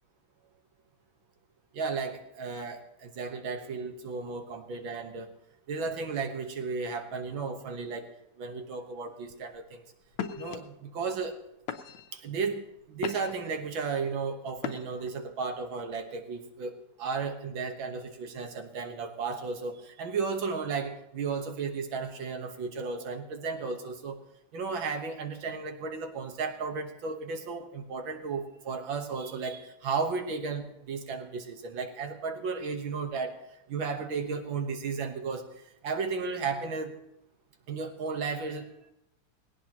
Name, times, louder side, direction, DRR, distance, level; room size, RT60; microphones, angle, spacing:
voice 1, 1.7-5.3 5.7-8.1 8.4-9.8 10.4-11.4 12.1-24.2 24.5-33.4 33.7-35.5 35.8-36.9 37.7-38.9, right 4 dB, 65° right, 6 dB, 2.0 m, -34 dB
sound 1, 9.3-9.6 10.1-10.6 11.2-11.4 11.7-12.2 12.7-13.5 14.6-15.1, left 8 dB, 75° left, 1.7 m, -37 dB
19.5 x 17.5 x 3.0 m, 0.85 s
omnidirectional pair, 2.3 m